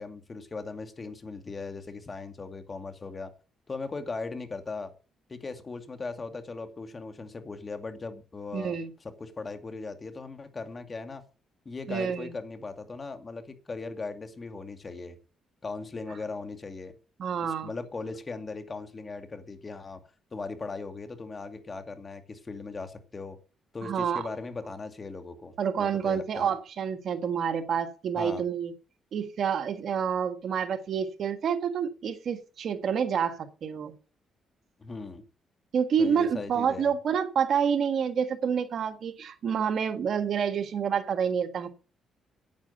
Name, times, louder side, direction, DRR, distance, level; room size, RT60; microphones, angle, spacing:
voice 1, 0.0-3.3 3.7-4.9 5.3-8.8 9.2-11.2 11.7-15.2 15.6-17.0 17.4-20.0 20.3-23.4 23.7-26.5 28.2-28.4 34.8-35.2 36.0-36.9, left 3 dB, 30° left, 2.2 m, -38 dB
voice 2, 8.5-8.9 11.9-12.3 17.2-17.7 23.8-24.3 25.6-28.7 29.1-33.9 35.7-41.7, right 7 dB, 60° right, 1.6 m, -28 dB
9.5 x 9.1 x 6.7 m
cardioid pair, 90°, 0 cm